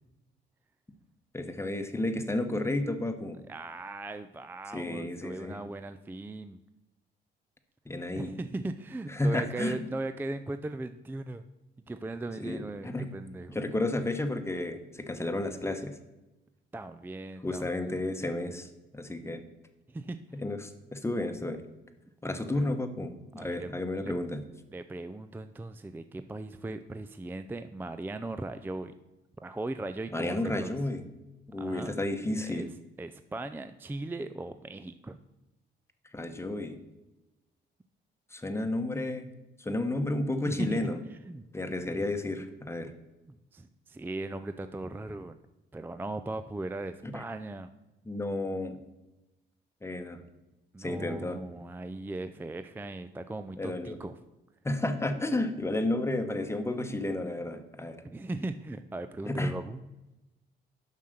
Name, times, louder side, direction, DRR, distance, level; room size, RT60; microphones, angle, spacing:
voice 1, 1.3-3.4 4.7-5.6 7.9-8.3 9.1-9.8 12.4-13.1 13.5-16.0 17.4-18.7 18.9-19.4 20.4-21.6 22.2-24.4 30.1-31.0 31.5-32.7 36.1-36.8 38.3-39.3 39.6-41.0 41.5-42.9 47.0-47.1 48.0-48.8 49.8-50.2 50.8-51.4 53.6-54.0 54.6-58.0 59.3-59.5, left 2 dB, 15° left, 7 dB, 1.0 m, -32 dB
voice 2, 3.5-6.6 8.2-11.4 11.9-13.6 16.7-17.7 19.9-20.2 22.5-22.7 23.4-24.1 24.7-28.9 29.4-30.8 31.6-31.9 32.4-32.7 33.0-35.2 40.5-41.4 41.9-42.0 43.3-45.4 45.7-47.7 50.7-54.1 57.2-57.3 58.0-59.8, right 2 dB, 10° right, 10 dB, 0.4 m, -38 dB
7.3 x 5.7 x 6.5 m, 1.0 s
cardioid pair, 90°, 20 cm